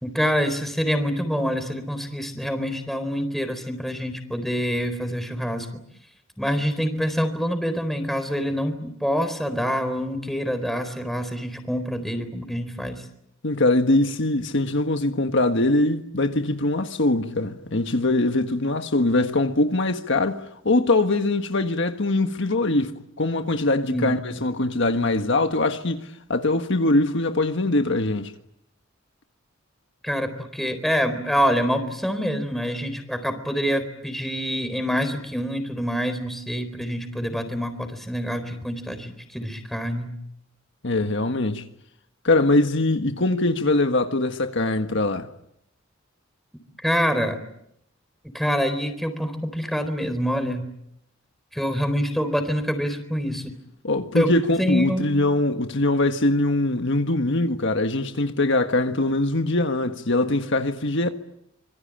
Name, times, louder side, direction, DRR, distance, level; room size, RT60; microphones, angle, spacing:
voice 1, 0.0-5.7 6.4-13.0 23.9-24.2 30.0-40.1 46.8-47.4 48.3-50.7 51.5-53.5 54.1-54.3 54.6-55.1, equal, ahead, 4.0 m, -26 dB
voice 2, 13.4-28.3 40.8-41.7 42.2-45.3 53.8-61.1, left 2 dB, 65° left, 1.6 m, -22 dB
26.0 x 23.5 x 8.9 m
head